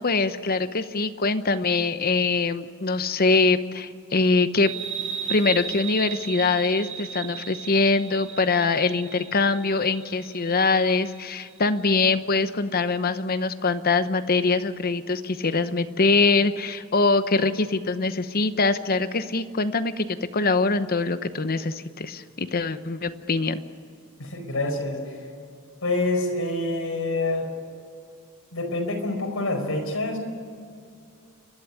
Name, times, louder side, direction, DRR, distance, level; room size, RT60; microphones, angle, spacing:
voice 1, 0.0-4.7 5.3-20.1 20.3-23.6, left 3 dB, 45° left, 11 dB, 0.9 m, -23 dB
sound 1, 4.6-11.8, right 7 dB, 60° right, 2.7 m, -36 dB
voice 2, 24.2-25.0 25.8-27.5 28.5-30.2, left 2 dB, 80° left, 1 dB, 5.1 m, -26 dB
29.5 x 12.0 x 9.7 m, 2.3 s
head